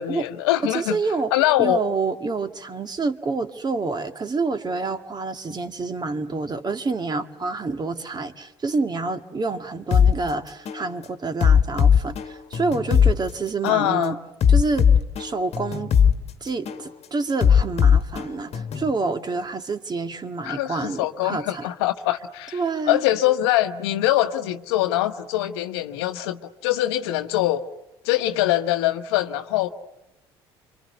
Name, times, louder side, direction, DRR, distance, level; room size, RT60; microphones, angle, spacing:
voice 1, 0.0-1.0 1.3-1.8 13.6-14.1 20.4-22.6 22.9-27.6 28.0-29.7, left 14 dB, 75° left, 10 dB, 1.1 m, -23 dB
voice 2, 0.6-1.3 1.6-14.2 14.5-14.9 15.2-15.9 16.4-21.7 22.5-23.0, right 3 dB, 30° right, 8 dB, 1.9 m, -27 dB
sound 1, 9.9-10.1 10.7-10.9 11.4-13.1 13.7-13.9 14.4-16.1 16.7-16.9 17.4-18.9, left 7 dB, 50° left, 1.5 m, -18 dB
27.5 x 25.0 x 8.1 m, 0.92 s
hypercardioid pair, 55°, 14 cm